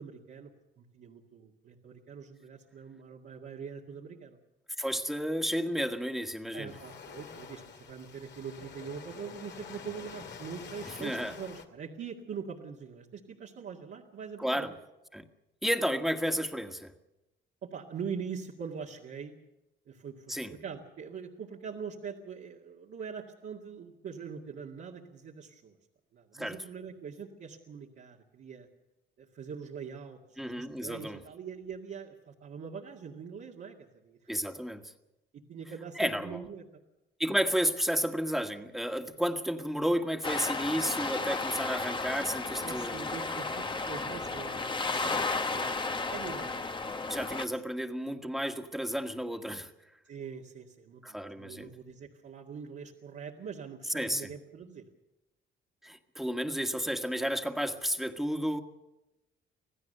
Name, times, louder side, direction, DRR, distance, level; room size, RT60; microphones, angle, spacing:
voice 1, 0.0-4.4 6.5-14.7 17.6-19.4 19.9-20.3 20.5-25.8 26.1-28.7 29.2-34.2 35.3-36.7 42.6-45.8 46.1-46.7 47.2-47.6 50.1-54.9, right 6 dB, 65° right, -3 dB, 2.2 m, -43 dB
voice 2, 4.8-6.7 10.9-11.3 14.4-14.7 15.1-15.2 15.6-16.9 20.3-20.5 26.4-26.6 30.4-31.2 34.3-34.9 36.0-36.4 37.2-43.1 47.1-49.7 51.0-51.7 53.9-54.3 55.8-58.6, equal, ahead, 5 dB, 1.8 m, -32 dB
Waves surf, 6.7-11.6, left 6 dB, 60° left, 2.3 m, -47 dB
sound 1, 40.2-47.5, left 3 dB, 25° left, 1.2 m, -33 dB
26.5 x 16.0 x 6.8 m, 0.96 s
cardioid pair, 90°, 20 cm